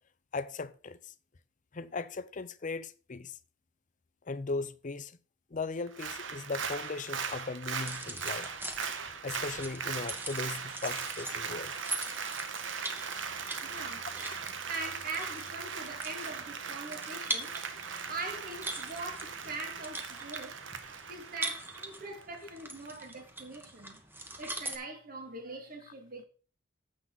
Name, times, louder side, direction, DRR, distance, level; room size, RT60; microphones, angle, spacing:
voice 1, 0.3-1.1 1.7-3.4 4.3-5.2 5.5-8.5 9.2-11.8, left 3 dB, 45° left, 0.6 m, -38 dB
Applause, 5.9-22.5 22.8-22.9, right 6 dB, 80° right, 1.2 m, -39 dB
sound 1, 7.8-24.8, right 2 dB, 10° right, 1.4 m, -43 dB
voice 2, 13.6-14.1 14.7-24.0 24.4-26.2, right 3 dB, 50° right, 2.3 m, -42 dB
10.0 x 7.5 x 4.0 m
head